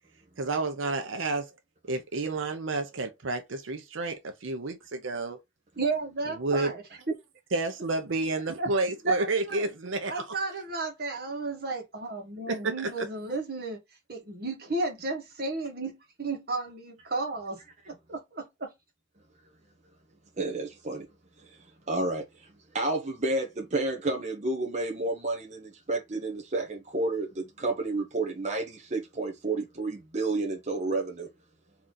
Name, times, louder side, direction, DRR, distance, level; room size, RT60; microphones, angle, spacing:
voice 1, 0.4-1.5 1.9-5.4 6.4-6.7 7.5-10.2 12.5-13.1, right 3 dB, 85° right, 0.7 m, -30 dB
voice 2, 5.8-7.1 8.6-8.7 9.0-9.6 10.0-13.8 14.1-17.6 17.9-18.7, right 3 dB, 55° right, 1.4 m, -33 dB
voice 3, 20.4-21.1 21.4-21.5 21.9-31.3, right 2 dB, 35° right, 0.7 m, -31 dB
3.7 x 3.0 x 3.9 m
head